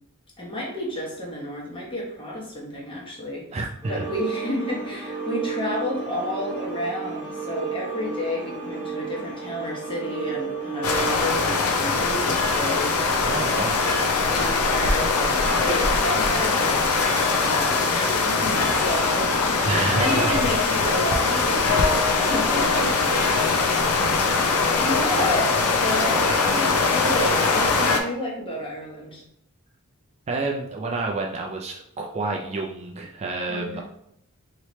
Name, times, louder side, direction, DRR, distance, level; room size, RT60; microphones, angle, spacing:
voice 1, 0.4-3.6 3.9-13.3 14.3-16.9 17.4-23.1 24.1-29.2 33.5-33.8, left 1 dB, 25° left, -3 dB, 1.0 m, -31 dB
voice 2, 3.5-4.1 13.3-13.9 19.6-20.4 30.3-33.8, right 3 dB, 30° right, 0 dB, 0.3 m, -28 dB
sound 1, 3.8-11.1, right 5 dB, 10° right, 0.8 m, -32 dB
sound 2, 10.8-28.0, left 4 dB, 80° left, 0.5 m, -22 dB
3.2 x 2.9 x 3.0 m, 0.74 s
head